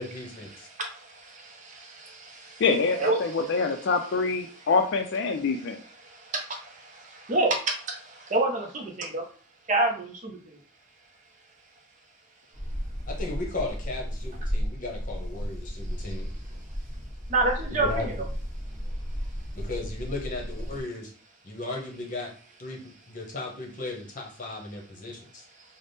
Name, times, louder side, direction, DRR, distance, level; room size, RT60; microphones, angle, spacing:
voice 1, 0.0-0.7 13.1-16.3 17.7-18.1 19.5-21.1 21.4-22.3 22.6-25.4, left 2 dB, 40° left, 0 dB, 0.8 m, -36 dB
voice 2, 0.7-2.6 3.0-3.2 5.6-5.7 6.0-9.2 9.7-10.6 17.3-18.1, right 2 dB, 35° right, 3 dB, 0.5 m, -29 dB
voice 3, 2.6-5.8, left 4 dB, 55° left, 5 dB, 0.3 m, -25 dB
sound 1, 12.5-20.8, equal, 5° left, 0.9 m, -34 dB
3.4 x 2.0 x 4.0 m, 0.41 s
head